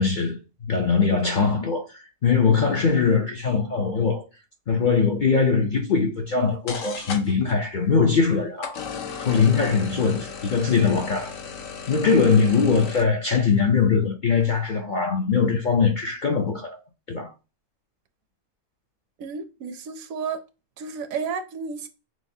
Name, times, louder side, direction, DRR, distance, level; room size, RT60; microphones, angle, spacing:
voice 1, 0.0-4.2 4.7-8.8 9.2-11.3 11.9-16.8 17.1-17.3, left 5 dB, 55° left, 0.5 m, -21 dB
sound 1, 6.3-6.4 6.7-7.5 8.6-13.0, left 6 dB, 70° left, 1.1 m, -36 dB
voice 2, 19.2-20.5 20.8-21.9, right 5 dB, 75° right, 1.0 m, -32 dB
6.2 x 2.2 x 2.6 m
omnidirectional pair, 1.5 m